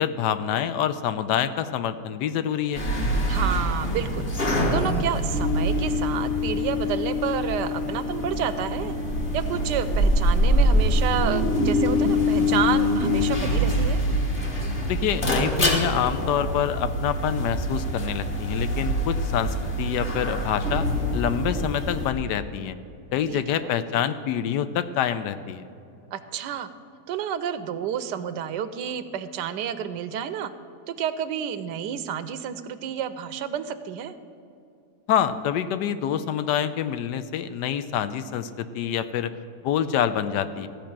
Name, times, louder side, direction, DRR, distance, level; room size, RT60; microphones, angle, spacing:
voice 1, 0.0-2.8 14.9-20.9 21.1-22.8 23.1-25.7 35.1-39.3 39.6-40.7, left 9 dB, 90° left, 12 dB, 1.2 m, -26 dB
sound 1, 2.7-22.1, left 1 dB, 35° left, 1.5 m, -24 dB
voice 2, 3.3-4.3 4.7-9.0 9.3-14.0 23.3-23.7 26.1-26.7 27.1-30.5 30.9-34.2, right 9 dB, 85° right, 12 dB, 1.3 m, -30 dB
14.5 x 5.2 x 8.7 m, 2.7 s
omnidirectional pair, 1.8 m